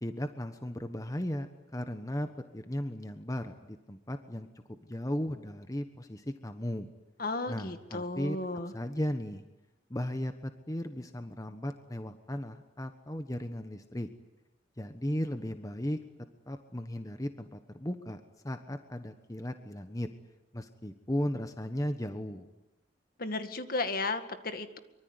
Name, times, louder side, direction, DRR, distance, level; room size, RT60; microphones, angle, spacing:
voice 1, 0.0-4.5 4.9-6.9 7.5-8.4 8.7-9.4 9.9-14.1 14.8-16.0 16.5-20.1 20.5-22.5, equal, 20° left, 8 dB, 1.2 m, -36 dB
voice 2, 7.2-8.7 23.2-24.8, left 3 dB, 50° left, 9 dB, 2.0 m, -34 dB
24.5 x 24.0 x 9.8 m, 0.99 s
head